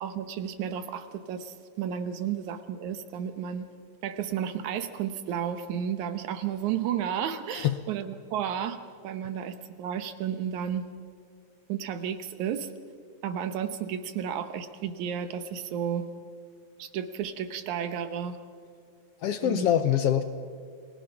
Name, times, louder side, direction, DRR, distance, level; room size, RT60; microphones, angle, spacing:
voice 1, 0.0-3.7 4.0-8.8 9.0-10.8 11.7-12.7 13.2-16.1 16.8-18.4 19.4-19.7, right 8 dB, 85° right, 10 dB, 2.5 m, -32 dB
voice 2, 19.2-20.2, left 10 dB, 70° left, 10 dB, 1.5 m, -24 dB
29.0 x 20.5 x 5.8 m, 2.2 s
omnidirectional pair, 3.3 m